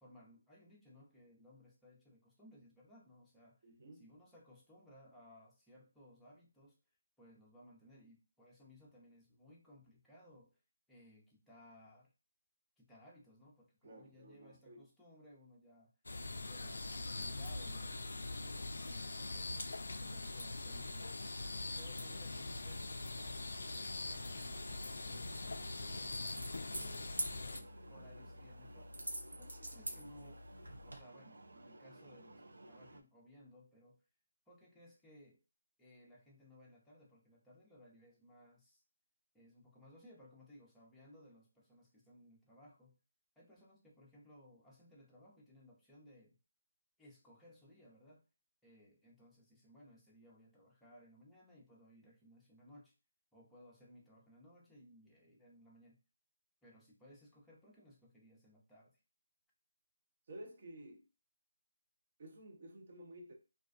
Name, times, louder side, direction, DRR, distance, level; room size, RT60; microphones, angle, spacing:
voice 1, 0.0-3.7 3.9-6.8 7.2-10.6 10.9-12.1 12.8-15.9 16.5-19.6 19.9-28.9 29.4-30.5 30.8-34.0 34.5-35.4 35.8-38.8 39.3-43.0 43.4-46.4 47.0-48.3 48.6-52.9 53.3-56.0 56.6-59.0, left 1 dB, 5° left, 0.6 m, -61 dB
voice 2, 3.6-4.0 13.8-14.8 60.3-61.0 62.2-63.3, right 1 dB, 45° right, 0.7 m, -53 dB
sound 1, 16.1-27.6, left 2 dB, 70° left, 0.3 m, -43 dB
sound 2, 16.1-33.0, right 2 dB, 75° right, 0.4 m, -58 dB
sound 3, 26.0-31.0, right 1 dB, 90° right, 0.8 m, -46 dB
2.3 x 2.2 x 2.5 m
figure-of-eight pair, 160°, 0 cm